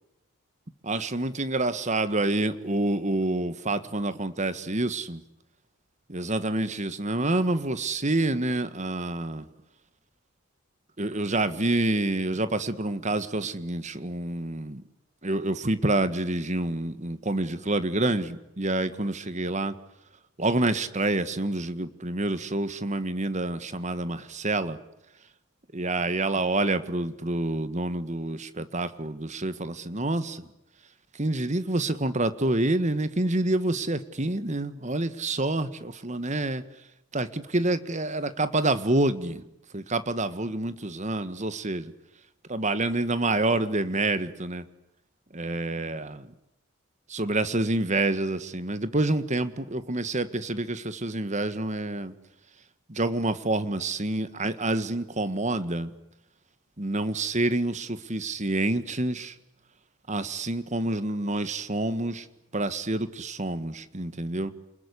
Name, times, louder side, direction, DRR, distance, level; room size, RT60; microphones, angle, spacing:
voice 1, 0.8-5.2 6.1-9.4 11.0-14.8 15.2-19.7 20.4-24.8 25.7-30.5 31.1-36.6 37.1-39.4 39.7-41.9 42.5-44.7 45.3-46.3 47.1-52.1 52.9-55.9 56.8-59.3 60.1-62.3 62.5-64.5, right 2 dB, 35° right, 13 dB, 1.6 m, -27 dB
29.0 x 21.0 x 9.9 m, 0.87 s
head